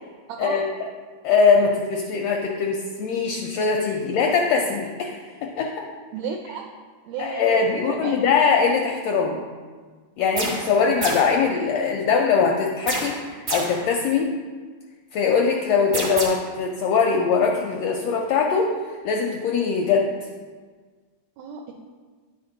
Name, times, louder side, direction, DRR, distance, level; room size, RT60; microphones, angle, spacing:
voice 1, 0.3-0.6 6.1-6.7 7.0-8.2 10.8-10.9 21.4-21.7, right 6 dB, 80° right, 1 dB, 1.6 m, -33 dB
voice 2, 1.2-5.7 7.2-9.4 10.2-14.3 15.1-20.1, left 5 dB, 80° left, 0 dB, 1.5 m, -22 dB
sound 1, 10.4-10.7 11.0-11.4 12.9-13.8 15.9-16.2, right 2 dB, 50° right, 1.0 m, -28 dB
9.7 x 4.3 x 3.8 m, 1.5 s
omnidirectional pair, 3.4 m